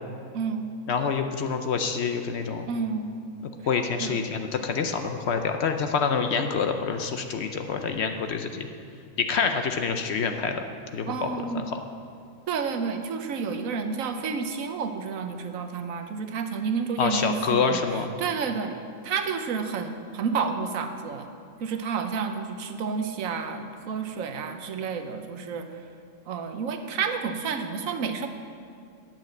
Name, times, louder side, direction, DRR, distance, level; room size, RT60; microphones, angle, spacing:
voice 1, 0.3-0.7 2.7-3.2 4.0-4.3 11.1-11.6 12.5-18.7 19.0-21.3 21.6-25.7 26.3-28.3, right 5 dB, 80° right, 7 dB, 1.2 m, -30 dB
voice 2, 0.9-2.7 3.7-8.7 9.2-10.6 10.9-11.3 11.5-11.6 17.0-18.1, left 5 dB, 60° left, 6 dB, 0.8 m, -27 dB
8.9 x 7.6 x 7.7 m, 2.3 s
omnidirectional pair, 1.4 m